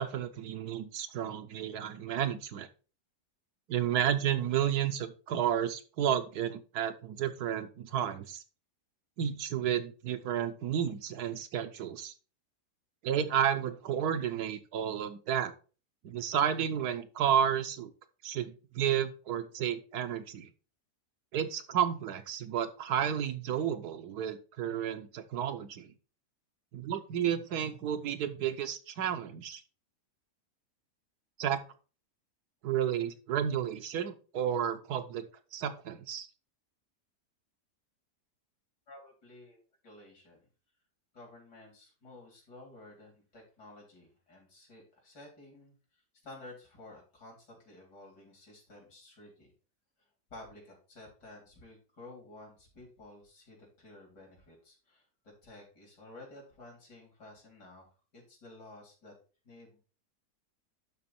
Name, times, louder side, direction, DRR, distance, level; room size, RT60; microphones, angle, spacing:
voice 1, 0.0-2.7 3.7-8.4 9.2-12.1 13.0-15.5 16.0-17.9 18.2-20.5 21.3-25.9 26.7-29.6 31.4-31.6 32.6-35.3 35.5-36.3, right 9 dB, 75° right, 9 dB, 1.3 m, -32 dB
voice 2, 38.9-39.6 39.8-40.4 41.1-49.5 50.3-55.1 55.4-59.1 59.4-59.8, left 2 dB, 80° left, -1 dB, 4.3 m, -53 dB
11.5 x 4.0 x 4.3 m, 0.35 s
omnidirectional pair, 1.8 m